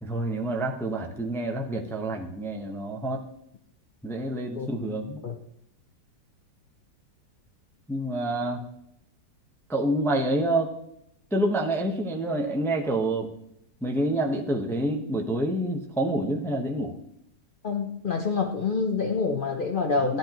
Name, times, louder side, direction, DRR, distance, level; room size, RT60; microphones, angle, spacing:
voice 1, 0.0-3.2 4.0-5.2 7.9-8.6 9.7-10.7 11.3-13.3 13.8-17.0, right 1 dB, ahead, 1 dB, 0.6 m, -27 dB
voice 2, 17.6-20.2, left 4 dB, 60° left, 3 dB, 0.5 m, -27 dB
13.5 x 10.5 x 3.0 m, 0.76 s
omnidirectional pair, 2.0 m